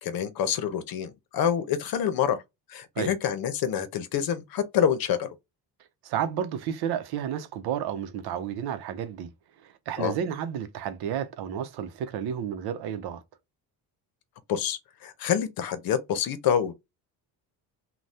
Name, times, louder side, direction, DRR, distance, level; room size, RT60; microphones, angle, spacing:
voice 1, 0.0-2.4 2.7-5.3 10.0-10.1 14.5-16.7, left 8 dB, 65° left, 0.7 m, -27 dB
voice 2, 6.0-9.3 9.6-13.2, right 9 dB, 75° right, 0.7 m, -31 dB
2.7 x 2.2 x 3.3 m
cardioid pair, 125°, 39 cm